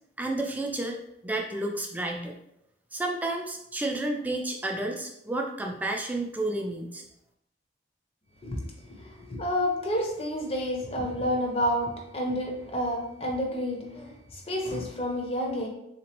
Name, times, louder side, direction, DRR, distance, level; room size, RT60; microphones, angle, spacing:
voice 1, 0.2-1.0 1.2-2.3 2.9-7.0, right 2 dB, 10° right, 2 dB, 0.4 m, -31 dB
voice 2, 8.9-15.7, equal, 35° left, 1 dB, 0.7 m, -30 dB
3.6 x 2.9 x 3.0 m, 0.81 s
head